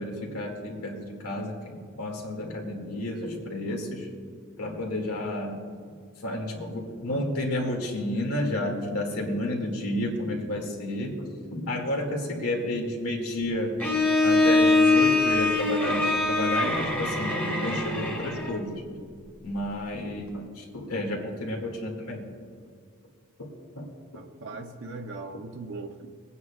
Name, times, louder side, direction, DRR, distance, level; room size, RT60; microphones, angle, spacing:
voice 1, 0.0-4.1 4.6-5.6 6.2-13.7 14.2-18.8 19.4-22.2 23.8-23.9, left 1 dB, 85° left, 1 dB, 2.2 m, -31 dB
Bowed string instrument, 13.8-18.7, left 2 dB, 10° left, 1.4 m, -23 dB
voice 2, 24.1-26.3, right 3 dB, 55° right, 2 dB, 0.6 m, -39 dB
24.0 x 9.5 x 2.4 m, 2.2 s
head